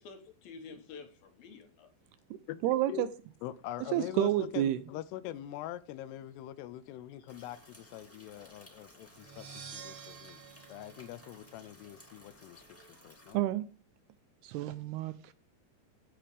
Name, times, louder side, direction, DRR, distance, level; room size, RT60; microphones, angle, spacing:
voice 1, 0.0-1.9 7.2-7.3, left 4 dB, 65° left, 2.9 m, -50 dB
voice 2, 2.6-3.1 3.9-4.8 13.3-13.7 14.4-15.3, right 13 dB, 80° right, 2.5 m, -29 dB
voice 3, 3.4-10.4 10.7-13.4, left 13 dB, 80° left, 2.6 m, -43 dB
sound 1, 7.3-13.3, left 1 dB, 20° left, 0.4 m, -58 dB
sound 2, 9.1-12.0, right 6 dB, 65° right, 3.7 m, -50 dB
16.0 x 5.9 x 3.3 m
omnidirectional pair, 4.9 m